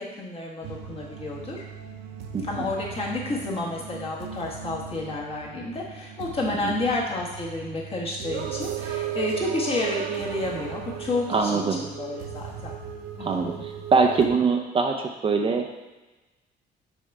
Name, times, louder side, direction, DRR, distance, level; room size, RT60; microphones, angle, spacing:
voice 1, 0.0-1.6 2.5-12.7 13.2-13.5, left 2 dB, 35° left, -3 dB, 1.6 m, -30 dB
sound 1, 0.6-14.3, right 9 dB, 85° right, 0.6 m, -36 dB
voice 2, 2.3-2.7 6.6-6.7 11.3-11.8 13.2-15.7, right 4 dB, 30° right, 3 dB, 0.5 m, -23 dB
6.3 x 3.4 x 4.8 m, 1.1 s
cardioid pair, 110°, 17 cm